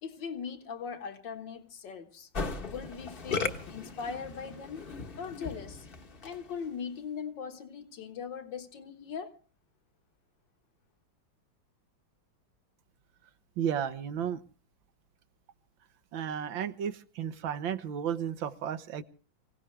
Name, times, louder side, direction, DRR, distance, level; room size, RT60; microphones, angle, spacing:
voice 1, 0.0-2.3 2.6-4.9 5.2-5.9 6.2-9.4, left 6 dB, 70° left, 2.1 m, -40 dB
Musical instrument, 2.3-6.6, left 4 dB, 35° left, 1.1 m, -37 dB
voice 2, 13.6-14.4 16.1-19.0, right 8 dB, 80° right, 1.7 m, -33 dB
25.0 x 17.0 x 3.3 m
omnidirectional pair, 2.1 m